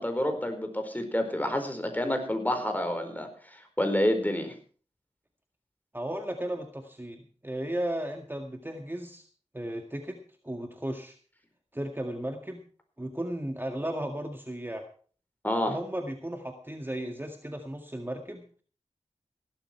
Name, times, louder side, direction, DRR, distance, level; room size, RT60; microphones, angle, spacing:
voice 1, 0.0-4.5 15.4-15.8, left 1 dB, 15° left, 6 dB, 4.6 m, -29 dB
voice 2, 5.9-9.2 9.5-10.2 10.4-11.2 11.7-12.6 13.0-14.9 15.7-18.4, right 1 dB, 15° right, 4 dB, 1.9 m, -35 dB
16.0 x 12.5 x 4.5 m, 0.42 s
cardioid pair, 40°, 12 cm